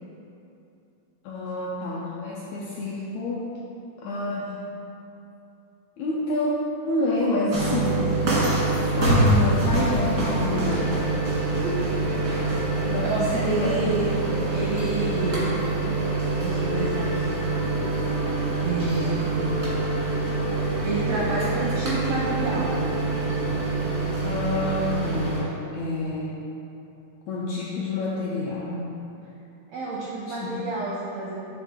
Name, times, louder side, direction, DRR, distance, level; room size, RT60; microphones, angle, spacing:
voice 1, 1.2-3.5 4.0-4.5 6.0-6.5 6.9-8.1 9.0-10.9 11.4-11.6 12.8-13.9 24.2-26.4 27.3-28.9 30.3-30.6, left 2 dB, 85° left, -6 dB, 1.6 m, -28 dB
sound 1, 7.5-25.4, right 3 dB, 65° right, 0.8 m, -25 dB
sound 2, 10.5-24.0, left 3 dB, 70° left, 0.7 m, -35 dB
voice 2, 13.0-14.1 14.5-15.6 16.3-17.4 18.6-19.5 20.8-22.9 29.7-31.4, right 3 dB, 80° right, -5 dB, 1.5 m, -29 dB
9.2 x 3.5 x 3.6 m, 2.8 s
omnidirectional pair, 3.9 m